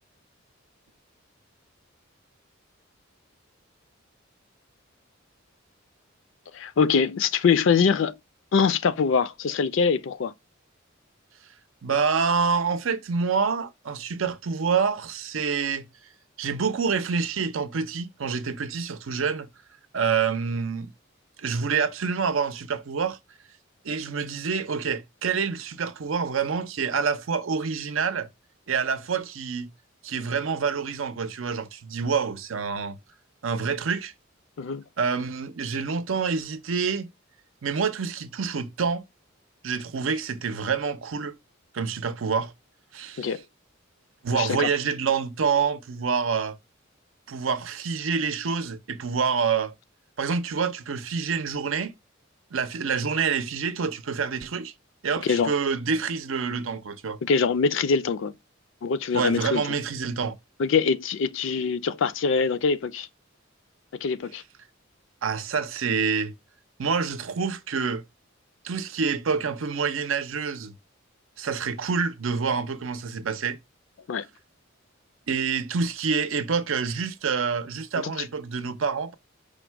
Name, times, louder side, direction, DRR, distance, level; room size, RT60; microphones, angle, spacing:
voice 1, 6.5-8.2 8.5-10.3 34.6-34.8 43.2-43.4 44.3-44.7 55.2-55.5 57.2-58.3 58.8-59.6 60.6-63.1 64.0-64.4 74.1-74.2 78.0-78.1, left 5 dB, 65° left, 0.4 m, -23 dB
voice 2, 11.8-15.9 16.4-19.5 19.9-20.9 21.4-23.2 23.8-28.3 28.7-29.7 30.0-33.0 33.4-34.1 35.0-37.1 37.6-39.0 39.6-41.4 41.7-42.5 42.9-43.3 44.2-46.6 47.3-49.7 50.2-51.9 52.5-54.7 55.0-57.2 59.1-60.4 65.2-66.3 66.8-68.0 68.6-70.7 71.4-73.6 75.3-79.1, right 5 dB, 80° right, 0.6 m, -27 dB
5.0 x 2.1 x 4.5 m
head